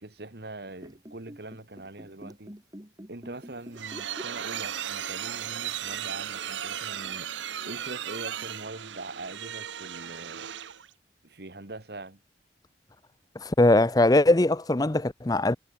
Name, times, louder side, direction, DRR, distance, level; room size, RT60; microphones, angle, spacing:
voice 1, 0.0-2.6 3.1-7.3 7.6-10.5 11.2-12.2, right 2 dB, 60° right, 1.7 m, -42 dB
sound 1, 0.7-4.7 5.0-5.2 6.1-6.2, equal, 20° right, 2.0 m, -46 dB
sound 2, 3.4-10.9, right 10 dB, 90° right, 0.8 m, -36 dB
voice 2, 13.4-15.6, left 2 dB, 20° left, 0.6 m, -21 dB
head